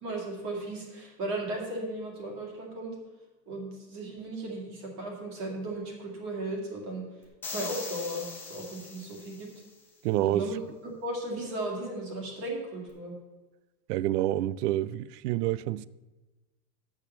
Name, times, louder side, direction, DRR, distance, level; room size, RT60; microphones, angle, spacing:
voice 1, 0.0-3.0 3.5-7.0 7.5-9.5 10.3-10.6 11.0-13.1, right 2 dB, 35° right, 2.3 m, -36 dB
sound 1, 7.4-9.7, left 4 dB, 5° left, 0.5 m, -41 dB
voice 2, 10.0-10.5 13.9-15.9, right 14 dB, 75° right, 0.5 m, -28 dB
8.3 x 6.7 x 7.0 m
supercardioid pair, 170°, 48 cm